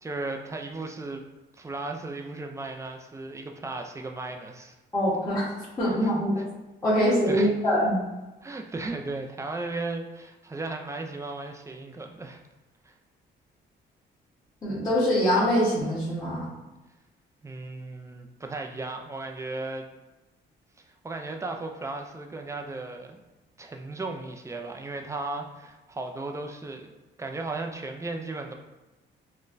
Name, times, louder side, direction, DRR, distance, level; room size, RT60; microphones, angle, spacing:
voice 1, 0.0-1.2 1.5-4.7 6.0-6.2 7.0-7.5 8.4-12.4 12.8-12.9 17.4-19.9 21.0-23.2 23.6-26.9 27.2-28.5, right 2 dB, 15° right, 3 dB, 0.4 m, -35 dB
voice 2, 4.9-6.3 6.8-8.0 14.6-16.4, equal, 15° left, -12 dB, 1.2 m, -24 dB
3.9 x 2.1 x 2.5 m, 1.1 s
cardioid pair, 90°, 20 cm